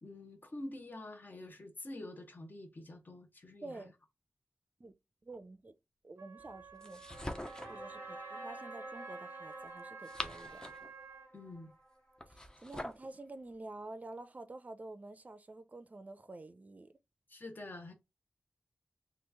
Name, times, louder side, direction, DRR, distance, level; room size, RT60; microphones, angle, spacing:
voice 1, 0.0-3.8 11.3-11.7 17.3-17.9, left 1 dB, 45° left, 0.9 m, -47 dB
voice 2, 3.6-3.9 4.8-4.9 5.2-5.7 6.0-7.0 7.7-10.6 12.3-16.9, right 2 dB, 35° right, 0.5 m, -49 dB
Wind instrument woodwind instrument, 6.2-11.3, right 6 dB, 85° right, 0.5 m, -51 dB
sound 1, 6.4-12.3, right 1 dB, 65° left, 1.9 m, -51 dB
sound 2, 6.8-7.8 9.8-10.9 12.2-13.1, left 1 dB, 15° left, 0.5 m, -43 dB
3.0 x 2.5 x 3.4 m
wide cardioid pair, 60°, 4 cm